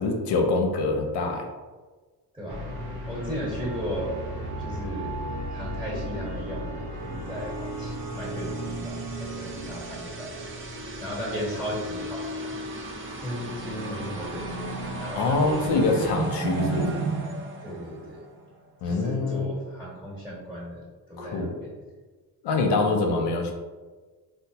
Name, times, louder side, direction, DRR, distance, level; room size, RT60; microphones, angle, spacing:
voice 1, 0.0-1.5 15.1-17.0 18.8-19.5 21.2-21.5 22.4-23.5, left 3 dB, 85° left, 2 dB, 0.7 m, -25 dB
voice 2, 2.3-2.7 3.1-4.1 4.6-5.1 5.5-6.7 7.0-10.5 11.0-12.6 12.9-14.7 15.0-16.1 17.6-18.2 18.8-20.8 21.1-21.7 22.8-23.0, equal, 5° right, -8 dB, 1.2 m, -36 dB
sound 1, 2.5-16.1, right 1 dB, 70° right, 0.8 m, -36 dB
sound 2, 7.8-18.5, right 3 dB, 30° right, 0.4 m, -35 dB
4.3 x 2.1 x 2.8 m, 1.3 s
cardioid pair, 115°, 40 cm